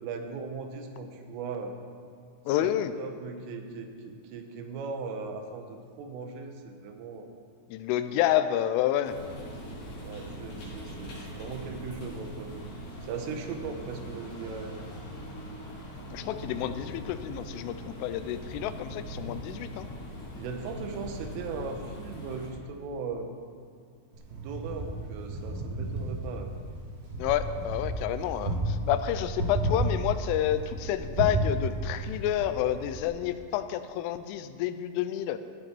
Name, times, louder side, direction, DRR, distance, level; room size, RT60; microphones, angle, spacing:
voice 1, 0.0-1.8 2.6-2.7 3.0-7.3 8.1-8.2 10.0-12.6 13.0-14.8 20.4-23.3 24.3-26.5, right 4 dB, 90° right, 5 dB, 3.7 m, -38 dB
voice 2, 2.5-2.9 7.7-9.2 16.1-19.9 27.2-35.4, left 12 dB, 90° left, 11 dB, 3.2 m, -29 dB
sound 1, 9.0-22.5, equal, 50° left, 4.6 m, -41 dB
Wind, 24.1-33.0, right 2 dB, 55° right, 4.5 m, -33 dB
15.0 x 11.5 x 4.5 m, 2.2 s
omnidirectional pair, 5.6 m